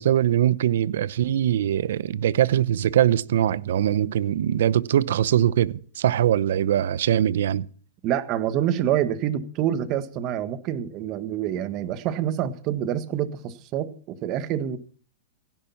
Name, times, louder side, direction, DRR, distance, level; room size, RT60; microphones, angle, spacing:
voice 1, 0.0-7.7, right 11 dB, 75° right, 0.8 m, -22 dB
voice 2, 8.0-14.8, right 10 dB, 40° right, 1.6 m, -27 dB
16.5 x 10.5 x 5.8 m
hypercardioid pair, 130°, 0 cm